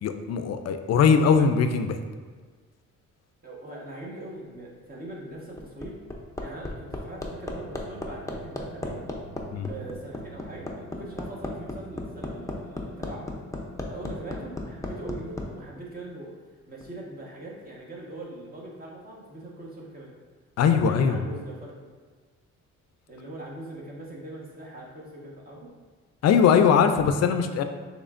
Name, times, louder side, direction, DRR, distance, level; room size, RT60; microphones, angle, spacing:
voice 1, 0.0-2.0 9.5-9.7 20.6-21.2 26.2-27.6, left 6 dB, 60° left, 8 dB, 0.5 m, -21 dB
voice 2, 3.4-6.0 6.4-9.1 9.6-13.3 13.9-16.4 16.7-20.1 20.6-21.9 23.1-25.7, right 1 dB, 30° right, -4 dB, 1.3 m, -41 dB
Hammer, 5.3-15.5 16.8-16.9, left 2 dB, 10° left, 0.6 m, -34 dB
sound 1, 7.3-12.4, right 5 dB, 50° right, 0.7 m, -49 dB
6.2 x 3.2 x 2.5 m, 1.5 s
cardioid pair, 90°, 30 cm